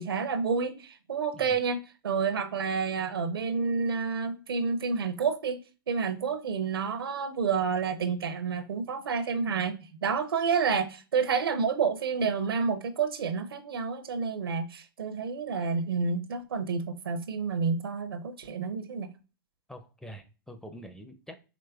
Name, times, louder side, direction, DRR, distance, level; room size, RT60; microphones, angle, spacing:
voice 1, 0.0-5.6 5.9-19.1, right 5 dB, 80° right, 0.7 m, -29 dB
voice 2, 19.7-21.4, equal, 5° left, 0.4 m, -45 dB
5.0 x 3.1 x 2.3 m
hypercardioid pair, 115°, 12 cm